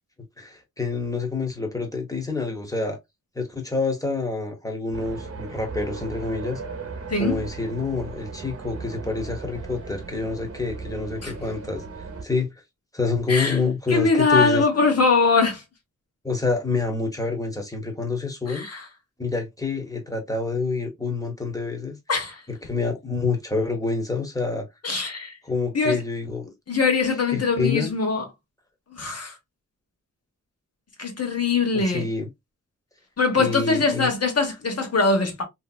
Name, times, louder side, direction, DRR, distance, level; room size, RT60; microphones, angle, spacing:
voice 1, 0.4-3.0 3.3-6.6 7.2-12.5 12.9-14.6 16.2-18.7 19.2-22.0 22.5-24.7 25.5-26.5 27.3-27.9 31.7-32.3 33.4-34.1, left 4 dB, 10° left, 0.9 m, -27 dB
sound 1, 4.9-12.2, right 4 dB, 50° right, 0.9 m, -37 dB
voice 2, 7.1-7.4 11.2-11.3 13.3-13.6 13.9-15.6 18.5-18.8 22.1-22.4 24.8-25.4 25.7-26.0 26.7-28.2 28.9-29.4 31.0-32.0 33.2-35.4, left 4 dB, 55° left, 1.1 m, -22 dB
3.2 x 2.8 x 2.3 m
wide cardioid pair, 105°, 31 cm